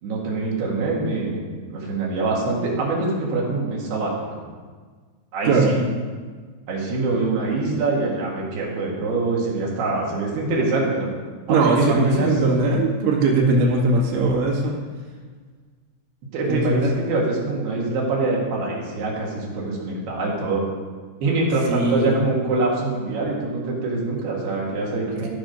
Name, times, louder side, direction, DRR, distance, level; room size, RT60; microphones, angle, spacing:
voice 1, 0.0-4.4 5.3-5.8 6.7-11.1 11.5-12.3 16.3-20.6 21.2-25.3, right 3 dB, 65° right, -4 dB, 3.9 m, -24 dB
voice 2, 5.4-5.8 11.5-14.8 16.5-16.8 21.7-22.2, right 3 dB, 85° right, -3 dB, 4.3 m, -20 dB
15.5 x 6.1 x 5.3 m, 1.5 s
omnidirectional pair, 5.2 m